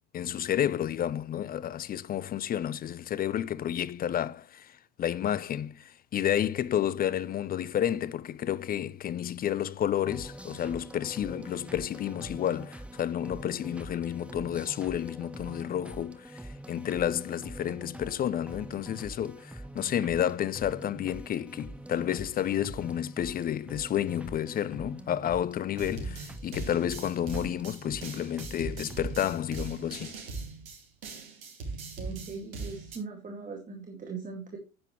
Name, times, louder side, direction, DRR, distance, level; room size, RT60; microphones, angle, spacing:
voice 1, 0.1-4.7 5.0-30.1, left 10 dB, 20° left, 0.6 m, -31 dB
sound 1, 10.1-29.2, right 1 dB, 5° right, 1.3 m, -45 dB
sound 2, 25.7-33.0, right 4 dB, 70° right, 4.0 m, -40 dB
voice 2, 32.0-34.6, right 4 dB, 20° right, 2.4 m, -40 dB
10.0 x 9.1 x 3.2 m
hypercardioid pair, 85°, 42 cm